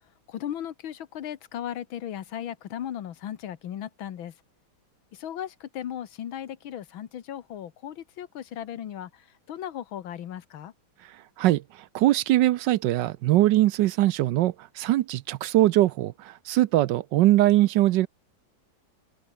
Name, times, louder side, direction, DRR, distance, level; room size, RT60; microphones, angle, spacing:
voice 1, 0.3-4.3 5.1-10.7, left 10 dB, 85° left, 2.0 m, -36 dB
voice 2, 11.9-18.1, right 15 dB, 75° right, 1.2 m, -21 dB
omnidirectional pair, 2.1 m